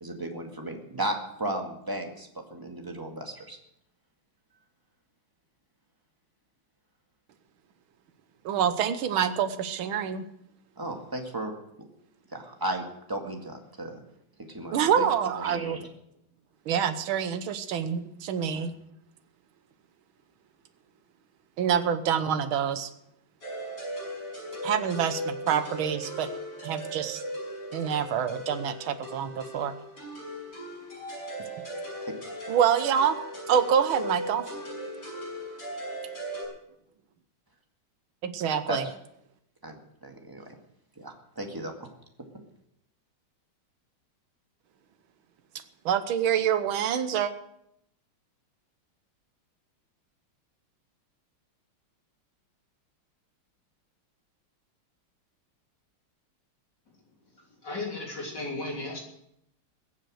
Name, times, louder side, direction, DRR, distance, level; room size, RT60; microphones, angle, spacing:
voice 1, 0.0-3.6 10.8-11.5 12.3-14.0 14.4-15.1 15.4-15.9 18.5-18.6 32.0-32.1 38.7-38.8 39.6-40.4 41.0-41.9, right 1 dB, 10° right, 3 dB, 1.9 m, -35 dB
voice 2, 8.5-10.2 14.7-15.8 16.7-18.7 21.6-22.9 24.6-26.3 26.6-27.2 27.7-29.7 32.5-33.2 33.5-34.5 38.2-38.9 45.9-47.3, right 8 dB, 75° right, 10 dB, 1.8 m, -26 dB
sound 1, 23.4-36.5, equal, 30° left, 6.4 m, -38 dB
voice 3, 57.6-59.0, left 2 dB, 55° left, -2 dB, 3.8 m, -34 dB
21.5 x 7.5 x 6.5 m, 0.76 s
omnidirectional pair, 2.3 m